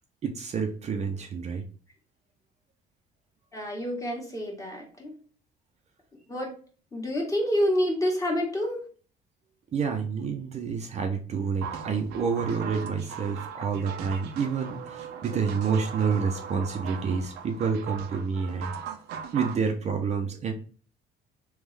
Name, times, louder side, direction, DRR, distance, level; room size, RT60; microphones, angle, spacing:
voice 1, 0.2-1.6 9.7-18.7 19.3-20.5, right 5 dB, 40° right, 4 dB, 0.6 m, -28 dB
voice 2, 3.5-5.2 6.3-6.6 6.9-8.8, equal, 20° left, -1 dB, 1.5 m, -28 dB
sound 1, 11.6-19.6, right 7 dB, 80° right, 0.6 m, -39 dB
3.5 x 3.1 x 3.3 m, 0.40 s
cardioid pair, 110°, 17 cm